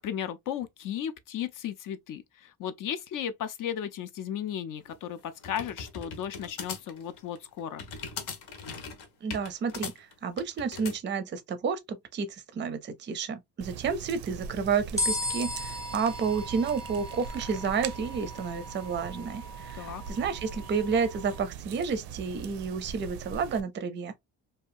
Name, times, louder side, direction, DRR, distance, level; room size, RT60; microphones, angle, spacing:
voice 1, 0.0-7.8 19.7-20.0, left 9 dB, 55° left, 0.5 m, -35 dB
sound 1, 4.8-11.0, left 5 dB, 80° left, 0.8 m, -40 dB
voice 2, 9.2-24.2, right 5 dB, 30° right, 0.4 m, -31 dB
sound 2, 13.6-23.6, right 8 dB, 80° right, 0.5 m, -42 dB
sound 3, 15.0-21.4, left 2 dB, 10° left, 0.7 m, -37 dB
2.7 x 2.3 x 2.4 m
cardioid pair, 130°, 38 cm